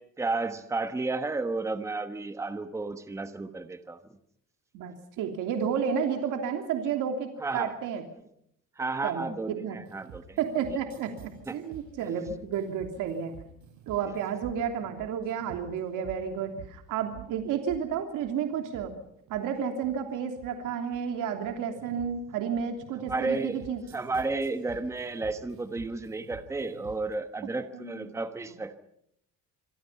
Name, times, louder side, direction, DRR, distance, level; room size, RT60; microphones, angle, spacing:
voice 1, 0.0-4.0 7.4-7.7 8.8-10.4 11.5-11.6 23.1-23.6 23.9-28.8, right 3 dB, 10° right, 9 dB, 1.2 m, -32 dB
voice 2, 4.7-8.0 9.0-9.8 10.4-11.1 11.5-13.3 13.9-18.9 19.3-23.9 27.7-28.1, right 7 dB, 85° right, 5 dB, 3.1 m, -31 dB
sound 1, 9.9-27.1, right 8 dB, 70° right, 6.9 m, -50 dB
27.0 x 24.0 x 5.7 m, 0.72 s
cardioid pair, 175°, 31 cm